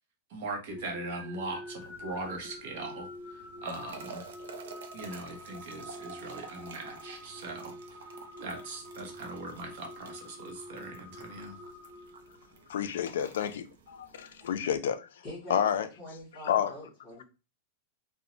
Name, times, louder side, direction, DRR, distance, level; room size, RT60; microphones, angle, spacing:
voice 1, 0.3-4.3 4.9-8.1 8.4-11.6, right 2 dB, 45° right, 0.7 m, -40 dB
sound 1, 0.7-12.7, left 1 dB, ahead, 0.9 m, -46 dB
sound 2, 1.8-14.8, right 5 dB, 85° right, 0.5 m, -50 dB
voice 2, 12.7-15.1 15.5-15.9 16.5-16.7, left 9 dB, 85° left, 0.3 m, -30 dB
voice 3, 15.2-15.7 16.0-17.2, left 1 dB, 20° left, 1.2 m, -44 dB
2.5 x 2.0 x 2.9 m
supercardioid pair, 180°, 0 cm